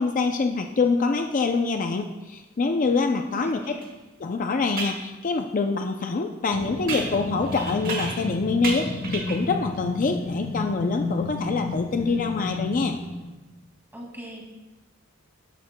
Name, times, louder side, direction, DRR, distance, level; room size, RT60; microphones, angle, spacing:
voice 1, 0.0-3.6 4.2-13.0, left 4 dB, 40° left, 5 dB, 0.4 m, -25 dB
voice 2, 3.2-3.8 13.9-14.4, equal, 10° right, -1 dB, 2.1 m, -39 dB
sound 1, 3.8-3.9 4.8-5.0 6.9-8.3 8.6-9.5, right 3 dB, 45° right, 1.3 m, -32 dB
sound 2, 6.5-13.3, left 2 dB, 70° left, 1.4 m, -32 dB
13.0 x 11.0 x 2.2 m, 1.1 s
head